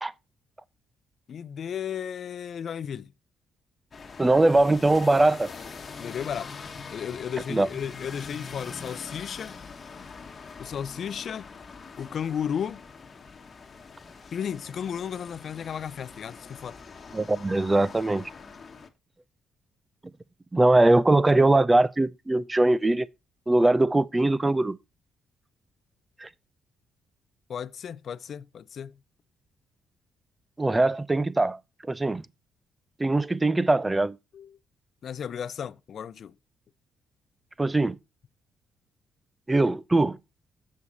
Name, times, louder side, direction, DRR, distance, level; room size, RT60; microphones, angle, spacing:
voice 1, 1.3-3.1 6.0-6.5 6.9-9.6 10.6-11.5 12.0-12.8 14.3-16.8 27.5-28.9 34.3-34.6 35.0-36.3, left 8 dB, 60° left, 0.4 m, -34 dB
sound 1, 3.9-18.9, left 5 dB, 40° left, 1.1 m, -43 dB
voice 2, 4.2-5.5 7.5-7.7 17.1-18.3 20.5-23.1 23.5-24.8 26.2-26.3 30.6-31.6 31.9-32.3 33.0-34.2 37.6-38.0 39.5-40.2, right 2 dB, 15° right, 0.4 m, -21 dB
7.4 x 6.3 x 4.0 m
cardioid pair, 90°, 0 cm